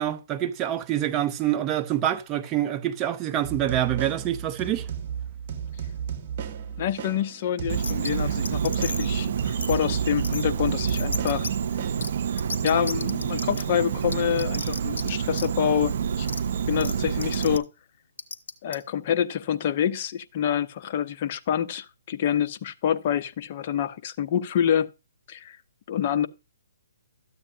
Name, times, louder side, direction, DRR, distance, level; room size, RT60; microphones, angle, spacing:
voice 1, 0.0-4.9, right 12 dB, 20° right, 0.7 m, -26 dB
sound 1, 3.4-12.5, right 8 dB, 35° right, 1.5 m, -34 dB
voice 2, 6.8-11.5 12.6-16.3 16.7-17.7 18.6-24.9 25.3-25.6 25.9-26.3, left 9 dB, 40° left, 0.6 m, -27 dB
Insect, 7.7-17.6, right 7 dB, 55° right, 0.7 m, -28 dB
sound 2, 7.8-8.1 8.5-9.1 9.6-9.8 10.2-10.4 10.9-11.5 12.0-12.1 12.4-13.6 14.1-15.1 15.3-15.5 16.3-16.4 16.8-16.9 17.2-17.6 18.2-18.8, left 4 dB, 75° left, 1.4 m, -33 dB
13.5 x 8.6 x 2.7 m
hypercardioid pair, 155°, 0 cm